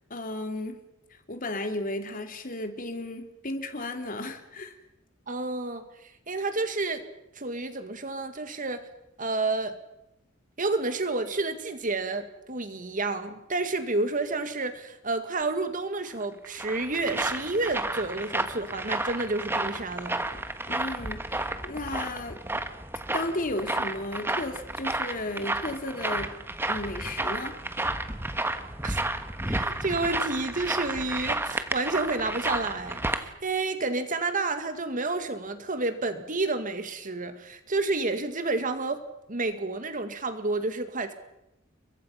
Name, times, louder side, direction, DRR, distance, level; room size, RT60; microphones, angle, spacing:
voice 1, 0.1-0.8 1.1-4.8 20.7-22.4 23.1-26.4 26.7-27.6, left 1 dB, 45° left, 6 dB, 3.0 m, -34 dB
voice 2, 5.3-7.0 7.4-8.9 9.2-9.8 10.6-20.2 28.8-29.0 29.5-39.0 39.3-41.1, right 3 dB, 40° right, 9 dB, 2.0 m, -30 dB
sound 1, 16.2-33.2, right 2 dB, 10° right, 1.5 m, -32 dB
30.0 x 23.5 x 5.8 m, 0.87 s
head